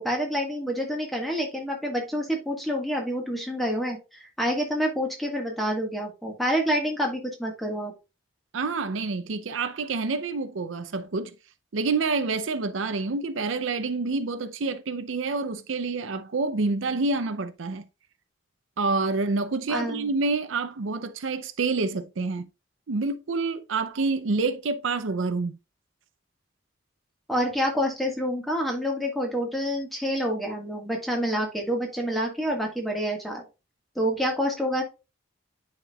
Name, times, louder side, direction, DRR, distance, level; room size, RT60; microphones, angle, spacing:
voice 1, 0.0-7.9 19.7-20.1 27.3-33.4 33.9-34.8, equal, ahead, 1.5 m, -28 dB
voice 2, 8.5-11.3 11.7-17.9 18.8-22.5 22.9-25.5, right 3 dB, 75° right, 0.6 m, -27 dB
9.9 x 4.4 x 2.3 m
head